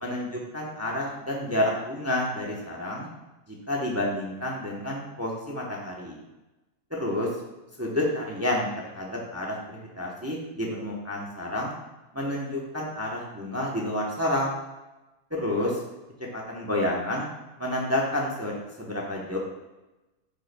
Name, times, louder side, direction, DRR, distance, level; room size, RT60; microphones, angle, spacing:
voice 1, 0.0-3.1 3.5-6.2 6.9-7.3 7.8-8.7 8.9-11.7 12.1-14.6 15.3-15.8 16.3-17.3 17.6-19.4, left 1 dB, 20° right, -2 dB, 0.4 m, -29 dB
8.5 x 5.2 x 2.2 m, 1.1 s
omnidirectional pair, 1.6 m